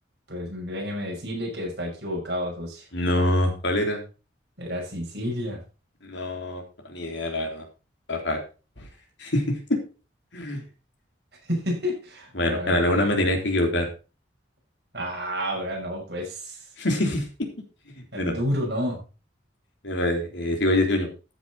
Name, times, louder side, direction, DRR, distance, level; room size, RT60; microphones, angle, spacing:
voice 1, 0.3-2.8 4.6-5.6 11.4-12.8 13.2-13.3 14.9-16.6 18.1-19.0, equal, 60° right, -1 dB, 5.8 m, -30 dB
voice 2, 2.9-4.0 6.0-7.6 8.1-8.4 9.2-9.8 10.3-10.6 12.3-13.9 16.8-17.5 18.0-18.4 19.8-21.1, left 1 dB, 75° left, 3 dB, 3.6 m, -25 dB
13.5 x 7.4 x 4.2 m, 0.32 s
head